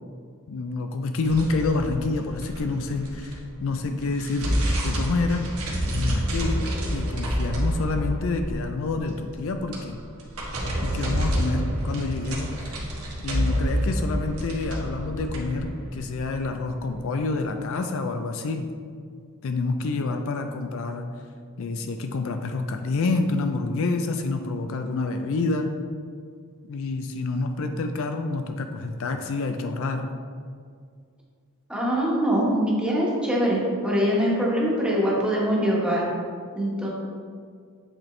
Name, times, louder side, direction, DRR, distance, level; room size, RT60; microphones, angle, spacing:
voice 1, 0.5-5.5 5.8-10.0 10.8-12.8 13.2-18.7 19.4-21.1 21.6-25.7 26.7-30.1, left 3 dB, 65° left, 6 dB, 0.4 m, -28 dB
sound 1, 1.2-3.6 4.0-17.0, equal, 80° right, 1.2 m, -28 dB
voice 2, 31.7-36.0 36.6-36.9, equal, 5° right, -5 dB, 1.2 m, -23 dB
7.8 x 4.3 x 3.2 m, 2.1 s
head